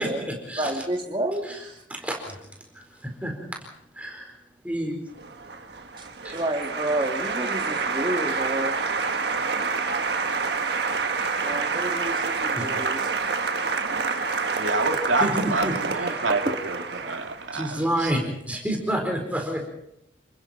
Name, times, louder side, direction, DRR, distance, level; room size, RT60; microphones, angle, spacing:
voice 1, 0.0-0.8 1.4-2.4 2.7-3.3 3.9-4.4 4.6-5.2 6.2-6.4 10.7-11.3 12.6-12.8 14.1-14.4 15.2-16.2 17.5-19.7, equal, 5° right, 4.3 m, -30 dB
voice 2, 0.6-1.8 6.0-8.8 11.4-13.0 17.0-17.1, right 1 dB, 25° right, 3.0 m, -30 dB
Applause, 5.2-17.6, right 4 dB, 60° right, 1.5 m, -28 dB
voice 3, 14.6-18.1, right 3 dB, 90° right, 2.5 m, -27 dB
30.0 x 20.0 x 4.4 m
head